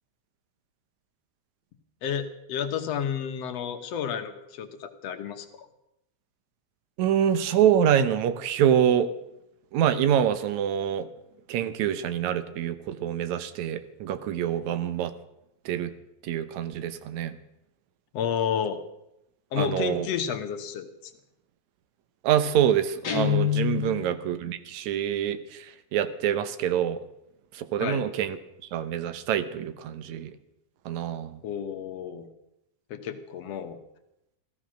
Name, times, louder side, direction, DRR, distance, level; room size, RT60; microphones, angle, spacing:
voice 1, 2.0-5.5 18.1-18.8 19.5-21.1 23.8-24.1 27.8-28.0 31.4-32.3 32.9-33.8, left 8 dB, 65° left, 7 dB, 2.1 m, -31 dB
voice 2, 7.0-9.1 9.7-11.1 11.5-15.1 15.7-15.9 16.2-17.3 19.6-20.1 22.2-25.4 25.9-27.0 27.6-28.4 28.7-30.3 30.9-31.4, right 9 dB, 80° right, 12 dB, 2.3 m, -25 dB
Guitar, 23.0-24.2, left 10 dB, 40° left, 1.9 m, -26 dB
16.0 x 13.0 x 6.3 m, 0.85 s
omnidirectional pair, 3.3 m